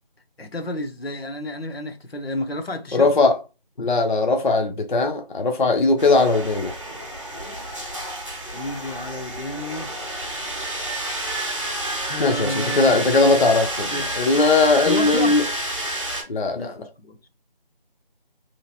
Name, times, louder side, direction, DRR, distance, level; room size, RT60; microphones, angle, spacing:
voice 1, 0.4-3.1 8.5-9.9 12.1-13.2 13.9-14.2 14.8-15.4 16.5-17.2, left 1 dB, 90° left, 0.8 m, -31 dB
voice 2, 2.9-3.3 3.8-6.7 12.2-13.9 14.2-15.4 16.3-16.7, left 3 dB, 55° left, 0.5 m, -19 dB
sound 1, 6.0-16.2, right 1 dB, 30° right, 0.7 m, -30 dB
2.9 x 2.5 x 2.8 m
figure-of-eight pair, 170°, 29 cm